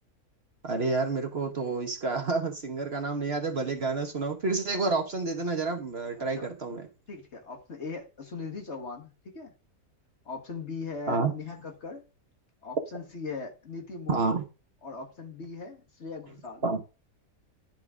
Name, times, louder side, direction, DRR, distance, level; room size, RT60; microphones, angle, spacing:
voice 1, 0.6-6.9 11.1-11.3 14.1-14.4 16.6-16.8, right 3 dB, 45° right, 1.2 m, -29 dB
voice 2, 6.2-6.7 7.1-9.5 10.2-12.0 12.6-14.4 14.8-16.6, left 4 dB, 50° left, 1.7 m, -40 dB
11.0 x 3.8 x 4.9 m
omnidirectional pair, 1.6 m